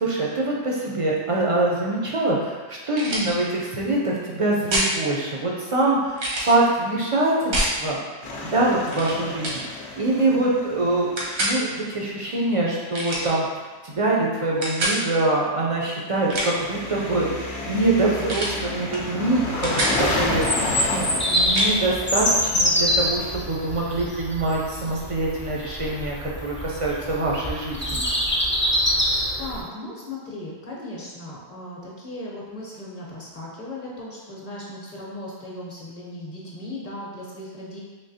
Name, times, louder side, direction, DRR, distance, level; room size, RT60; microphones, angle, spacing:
voice 1, 0.0-8.0 8.5-11.1 11.4-13.4 13.8-20.4 20.8-28.0, right 2 dB, 50° right, -3 dB, 0.4 m, -24 dB
sound 1, 3.0-3.3 4.7-4.9 6.2-6.6 7.5-7.8 8.9-9.1 9.4-9.6 11.2-11.6 12.9-13.3 14.6-15.0 16.1-16.7 18.3-18.6 18.9-19.1 19.4-20.0 21.5-21.7, right 1 dB, 85° right, 1.1 m, -25 dB
sound 2, 8.2-12.1 16.2-23.9, left 2 dB, 85° left, 0.9 m, -31 dB
Bird vocalization bird call bird song, 20.0-29.6, equal, 20° left, 0.3 m, -25 dB
voice 2, 29.4-37.8, left 1 dB, 40° left, -5 dB, 0.8 m, -37 dB
3.7 x 3.1 x 2.7 m, 1.3 s
omnidirectional pair, 1.1 m